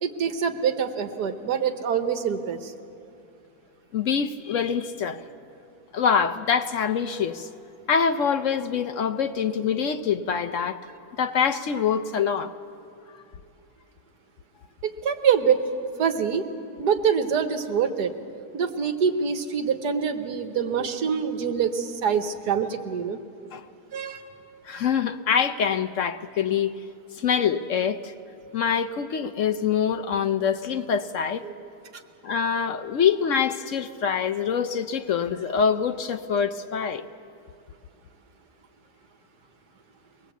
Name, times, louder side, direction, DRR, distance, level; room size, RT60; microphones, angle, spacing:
voice 1, 0.0-2.7 14.8-15.7 16.0-16.5 16.8-18.1 18.5-23.5 23.9-24.2 31.5-31.6, right 7 dB, 85° right, 7 dB, 1.7 m, -25 dB
voice 2, 3.9-5.2 5.9-7.5 7.9-10.8 11.2-12.5 23.5-23.7 24.6-26.8 27.1-28.1 28.5-31.5 32.2-37.1, left 7 dB, 60° left, 9 dB, 0.9 m, -25 dB
23.0 x 19.5 x 8.2 m, 2.5 s
omnidirectional pair, 1.7 m